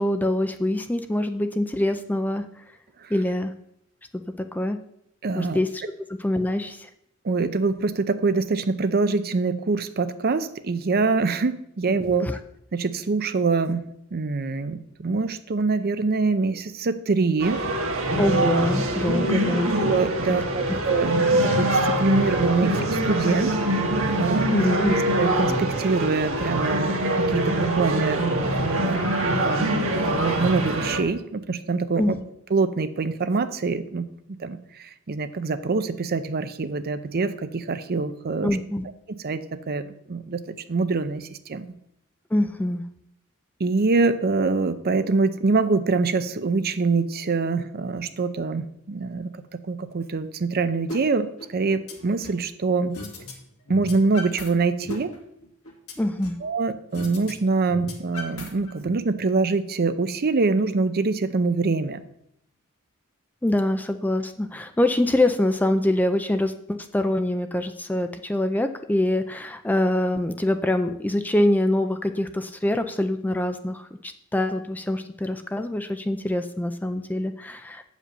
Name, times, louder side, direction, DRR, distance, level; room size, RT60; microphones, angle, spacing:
voice 1, 0.0-2.4 3.1-3.5 4.4-4.8 5.3-5.8 6.1-6.9 12.2-12.4 18.2-19.7 20.3-20.4 20.7-20.8 24.5-24.9 32.0-32.2 38.4-38.8 42.3-42.8 56.0-56.4 63.4-77.8, left 1 dB, 10° left, 8 dB, 0.4 m, -24 dB
voice 2, 5.2-5.6 7.2-12.3 12.7-13.8 14.1-17.6 19.8-23.6 24.2-24.5 25.2-32.2 32.5-38.6 39.1-40.4 40.7-41.7 43.6-49.3 49.7-53.0 53.7-55.1 56.4-62.0, right 4 dB, 45° right, 11 dB, 0.6 m, -25 dB
sound 1, 17.4-31.0, right 1 dB, 65° right, 1.5 m, -24 dB
sound 2, 50.9-51.0 51.4-52.4 52.9-53.3 53.6-54.5 54.8-56.5 56.9-57.3 57.6-58.9, left 2 dB, 70° left, 2.0 m, -37 dB
8.4 x 5.1 x 6.6 m, 0.77 s
head